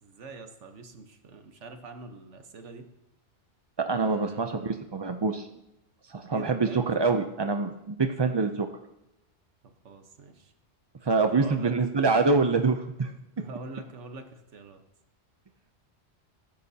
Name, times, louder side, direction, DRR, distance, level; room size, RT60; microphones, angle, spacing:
voice 1, 0.0-2.9 3.9-4.7 6.3-6.9 9.8-10.5 11.3-11.7 13.4-14.8, right 3 dB, 85° right, 6 dB, 1.5 m, -44 dB
voice 2, 3.8-5.5 6.1-8.7 11.0-13.1, right 4 dB, 35° right, 6 dB, 0.4 m, -25 dB
17.5 x 10.5 x 2.8 m, 0.93 s
omnidirectional pair, 1.2 m